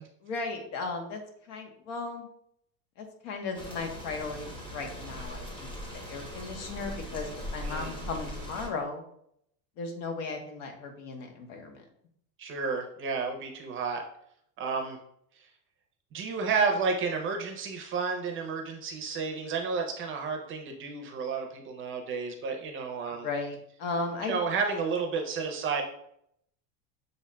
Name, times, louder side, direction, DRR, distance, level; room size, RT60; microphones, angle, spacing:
voice 1, 0.2-1.2 1.5-2.3 3.0-5.7 5.9-9.0 9.8-11.8 23.2-24.4, left 3 dB, 70° left, 3 dB, 1.1 m, -36 dB
sound 1, 3.5-8.7, left 1 dB, 10° left, 0.8 m, -40 dB
voice 2, 7.6-8.0 12.4-14.0 14.6-15.0 16.1-23.3 24.3-25.8, right 5 dB, 30° right, 3 dB, 0.6 m, -31 dB
6.9 x 2.7 x 2.2 m, 0.71 s
supercardioid pair, 140°, 41 cm